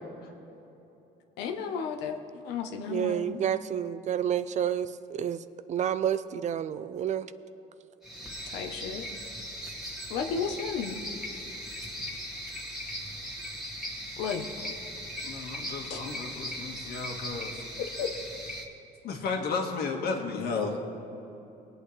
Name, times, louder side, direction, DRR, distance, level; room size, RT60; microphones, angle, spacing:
voice 1, 1.4-2.2 2.4-3.4 8.5-9.1 10.1-11.0 14.2-14.5 15.9-16.0 17.8-18.1, left 6 dB, 90° left, 5 dB, 1.0 m, -33 dB
voice 2, 2.9-7.3, right 9 dB, 45° right, 13 dB, 0.5 m, -30 dB
sound 1, 8.0-18.6, equal, 5° right, 1.9 m, -39 dB
voice 3, 15.2-17.6 19.0-20.8, left 4 dB, 70° left, 2 dB, 1.7 m, -33 dB
21.0 x 8.6 x 3.3 m, 3.0 s
cardioid pair, 110°, 17 cm